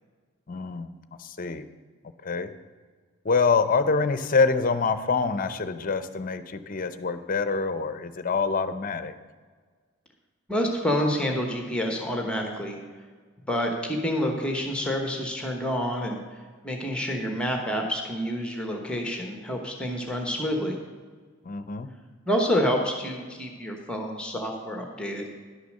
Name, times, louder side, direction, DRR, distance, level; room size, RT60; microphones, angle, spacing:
voice 1, 0.5-0.9 1.2-1.7 2.2-2.5 3.2-9.1 21.4-21.9, left 4 dB, 40° left, 11 dB, 0.6 m, -25 dB
voice 2, 10.5-12.8 13.5-16.2 16.6-20.8 22.3-25.3, equal, 5° left, 2 dB, 1.1 m, -28 dB
11.5 x 6.7 x 6.5 m, 1.6 s
head